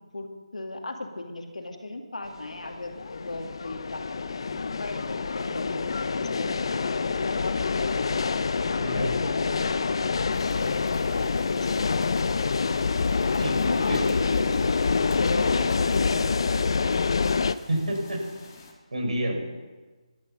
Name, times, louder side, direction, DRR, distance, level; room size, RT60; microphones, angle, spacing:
voice 1, 0.1-6.5 7.1-8.2 8.5-10.1 10.5-12.2 13.6-16.9, left 2 dB, 85° left, 3 dB, 2.3 m, -36 dB
sound 1, 2.4-17.5, left 4 dB, 45° left, 0.5 m, -26 dB
sound 2, 10.3-18.7, left 4 dB, 30° left, 2.0 m, -49 dB
voice 2, 17.7-18.2 18.9-19.4, right 1 dB, 80° right, 1 dB, 4.9 m, -28 dB
12.0 x 11.5 x 6.9 m, 1.3 s
figure-of-eight pair, 170°, 4 cm